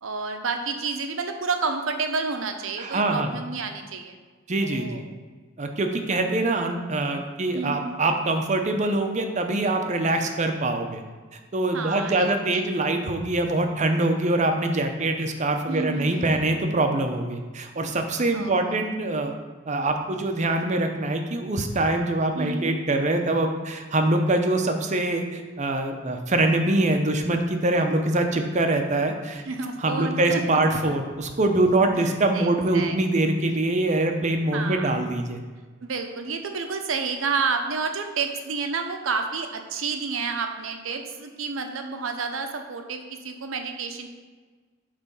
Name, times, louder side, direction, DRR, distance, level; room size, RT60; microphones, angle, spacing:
voice 1, 0.0-4.2 4.6-5.0 7.5-8.0 11.7-12.6 15.7-16.3 18.3-18.8 22.3-22.8 29.4-30.4 30.9-31.0 32.0-33.0 34.5-34.9 35.8-44.1, right 4 dB, 80° right, 5 dB, 0.7 m, -30 dB
voice 2, 2.8-3.3 4.5-5.0 5.6-11.0 11.5-19.3 19.7-29.4 29.8-35.4, right 2 dB, 35° right, 5 dB, 0.7 m, -24 dB
8.2 x 3.3 x 5.4 m, 1.4 s
head